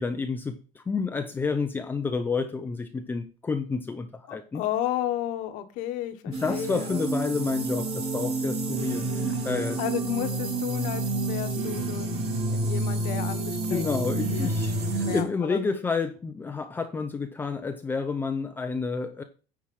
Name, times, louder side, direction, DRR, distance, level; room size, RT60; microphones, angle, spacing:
voice 1, 0.0-4.6 6.3-9.8 13.7-19.2, left 4 dB, 15° left, 0.6 m, -30 dB
voice 2, 4.3-7.1 9.8-14.0 14.3-14.5 15.0-15.7, left 12 dB, 70° left, 1.5 m, -33 dB
sound 1, 6.3-15.2, right 2 dB, 45° right, 2.6 m, -29 dB
9.6 x 4.8 x 6.2 m
cardioid pair, 160°, 14 cm